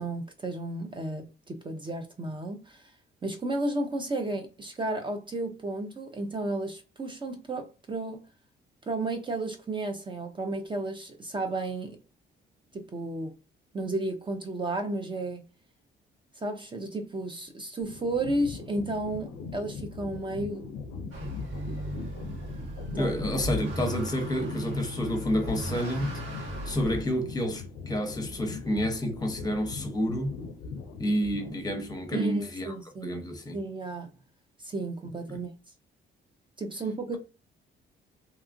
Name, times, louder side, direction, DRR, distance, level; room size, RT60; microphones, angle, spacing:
voice 1, 0.0-2.9 3.2-8.2 8.8-12.0 12.7-13.4 13.7-15.4 16.4-20.6 22.9-23.1 32.1-33.3 33.5-34.1 34.6-35.5 36.6-37.2, right 2 dB, 25° right, 0.5 m, -33 dB
sound 1, 17.8-32.0, left 4 dB, 90° left, 0.5 m, -41 dB
Motor vehicle (road) / Accelerating revving vroom, 21.1-27.0, equal, 85° right, 1.6 m, -36 dB
voice 2, 23.0-26.2 26.6-30.4 31.0-32.8 33.0-33.6 35.3-35.4, equal, 20° left, 0.8 m, -29 dB
2.8 x 2.3 x 2.5 m
cardioid pair, 90°, 20 cm